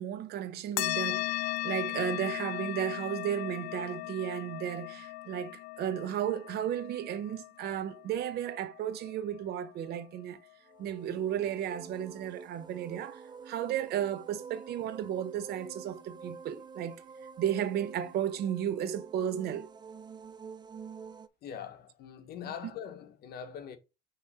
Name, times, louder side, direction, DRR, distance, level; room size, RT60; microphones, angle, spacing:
voice 1, 0.0-10.4 10.8-17.0 17.4-19.7, right 10 dB, 70° right, 0.8 m, -34 dB
sound 1, 0.8-9.7, left 17 dB, 85° left, 0.4 m, -37 dB
sound 2, 10.7-21.3, right 5 dB, 25° right, 0.5 m, -48 dB
voice 2, 21.4-23.8, left 8 dB, 70° left, 1.2 m, -42 dB
5.7 x 3.2 x 5.4 m
cardioid pair, 110°, 17 cm